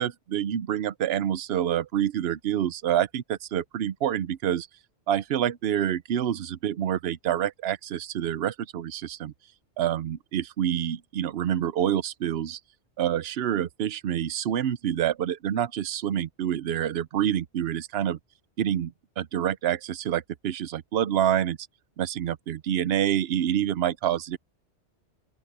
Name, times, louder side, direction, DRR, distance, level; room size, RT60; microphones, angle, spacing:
voice 1, 0.0-4.7 5.1-9.3 9.8-12.6 13.0-18.2 18.6-21.6 22.0-24.4, right 10 dB, 65° right, 0.9 m, -27 dB
open air
omnidirectional pair, 1.2 m